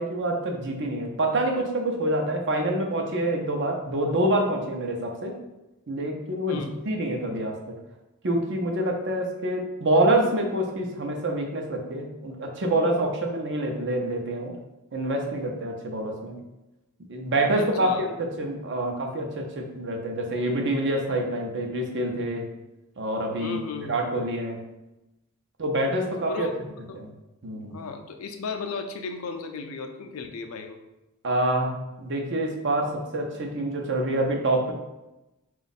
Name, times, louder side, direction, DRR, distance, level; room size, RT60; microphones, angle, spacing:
voice 1, 0.0-5.4 5.9-7.8 8.2-14.5 14.9-16.4 17.1-22.5 23.0-23.6 23.9-24.6 25.6-26.5 27.0-27.1 27.4-27.8 31.2-34.7, right 1 dB, 55° right, 2 dB, 0.7 m, -26 dB
voice 2, 17.5-18.1 23.4-24.0 26.3-27.0 27.7-30.8, left 4 dB, 75° left, 6 dB, 0.5 m, -35 dB
4.0 x 2.4 x 4.1 m, 0.98 s
head